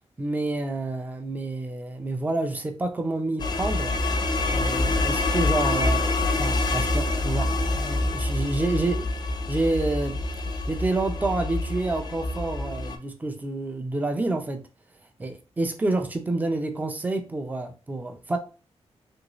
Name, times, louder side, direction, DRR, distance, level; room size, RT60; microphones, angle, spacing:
voice 1, 0.2-3.9 4.4-9.1 9.5-10.2 10.7-14.6 15.2-18.4, right 2 dB, 15° right, 4 dB, 0.5 m, -28 dB
sound 1, 3.4-13.0, left 2 dB, 40° left, 0.5 m, -26 dB
3.0 x 2.6 x 2.9 m, 0.34 s
wide cardioid pair, 145°, 11 cm